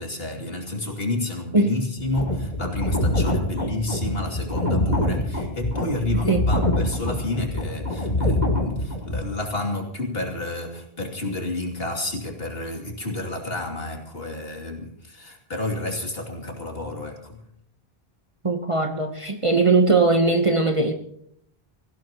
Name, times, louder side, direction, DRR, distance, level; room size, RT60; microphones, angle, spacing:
voice 1, 0.0-17.4, left 2 dB, 70° left, 1 dB, 3.0 m, -30 dB
sound 1, 2.0-9.2, left 1 dB, 45° left, 2.8 m, -25 dB
voice 2, 18.4-20.9, right 3 dB, 35° right, 5 dB, 1.0 m, -20 dB
24.0 x 16.0 x 3.0 m, 0.70 s
omnidirectional pair, 1.0 m